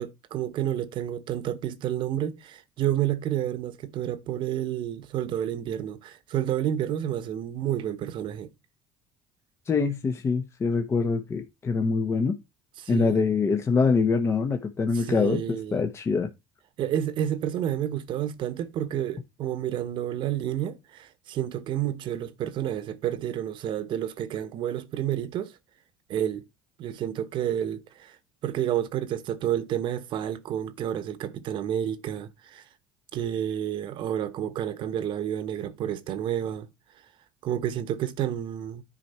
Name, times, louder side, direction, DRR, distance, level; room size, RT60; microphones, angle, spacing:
voice 1, 0.0-8.5 12.8-13.2 14.9-15.8 16.8-25.5 26.1-26.5 26.8-28.2 28.4-32.6 33.1-36.7 37.4-38.8, right 11 dB, 55° right, 1.1 m, -30 dB
voice 2, 9.7-12.4 12.9-15.4 15.7-16.3, left 4 dB, 30° left, 1.0 m, -24 dB
10.0 x 4.7 x 4.3 m
supercardioid pair, 110°, 10 cm